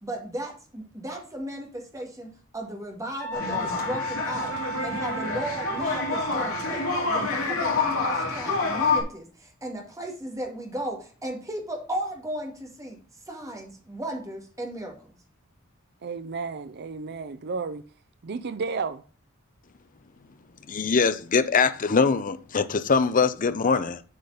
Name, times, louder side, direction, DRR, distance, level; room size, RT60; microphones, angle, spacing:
voice 1, 0.0-4.6 4.8-13.0 13.3-15.2, right 1 dB, 15° right, 2.0 m, -35 dB
Wind instrument woodwind instrument, 3.2-7.3, right 2 dB, 10° left, 1.0 m, -35 dB
sound 1, 3.3-9.0, left 4 dB, 80° left, 2.7 m, -27 dB
voice 2, 16.0-17.8 18.2-19.0, right 4 dB, 50° right, 0.5 m, -32 dB
voice 3, 20.7-24.0, left 5 dB, 40° left, 0.6 m, -22 dB
8.4 x 5.1 x 4.0 m
head